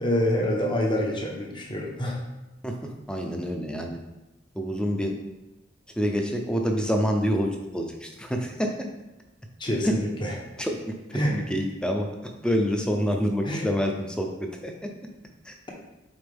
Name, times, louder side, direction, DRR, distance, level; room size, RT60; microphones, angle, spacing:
voice 1, 0.0-2.2 9.6-10.4 11.1-11.4 13.4-13.7, left 1 dB, 25° left, -1 dB, 1.0 m, -26 dB
voice 2, 2.6-4.0 4.5-5.1 6.0-8.7 9.8-10.0 10.6-10.8 11.3-12.1 12.4-14.7 15.5-15.6, equal, 5° left, 2 dB, 0.7 m, -27 dB
8.0 x 4.3 x 3.5 m, 0.99 s
head